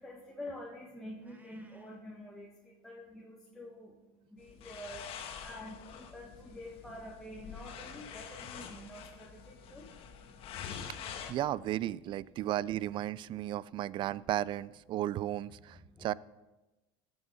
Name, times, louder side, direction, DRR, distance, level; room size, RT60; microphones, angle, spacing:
voice 1, 0.0-10.9 12.1-12.2 15.9-16.1, left 1 dB, 5° left, -4 dB, 1.5 m, -48 dB
Meow, 1.2-2.0, right 1 dB, 15° right, 1.5 m, -63 dB
sound 1, 4.4-11.3, left 8 dB, 50° left, 1.3 m, -46 dB
voice 2, 10.6-11.0 11.3-16.1, right 13 dB, 45° right, 21 dB, 0.4 m, -35 dB
17.0 x 6.8 x 4.1 m, 1.1 s
supercardioid pair, 105°, 12 cm